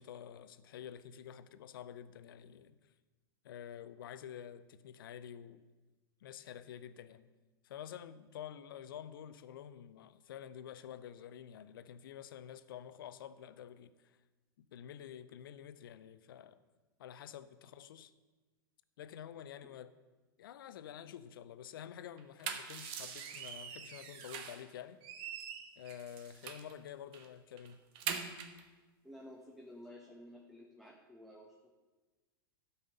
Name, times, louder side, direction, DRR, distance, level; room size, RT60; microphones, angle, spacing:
voice 1, 0.0-2.8 3.4-5.6 6.2-7.3 7.6-14.1 14.6-16.6 17.0-18.1 19.0-19.9 20.4-25.0 25.8-27.8, left 9 dB, 70° left, 0.6 m, -49 dB
sound 1, 22.2-24.7 25.0-26.7 27.1-27.3 27.6-28.6, right 7 dB, 45° right, 1.2 m, -43 dB
voice 2, 29.0-31.8, left 1 dB, ahead, 1.2 m, -53 dB
12.0 x 5.7 x 6.7 m
hypercardioid pair, 100°, 12 cm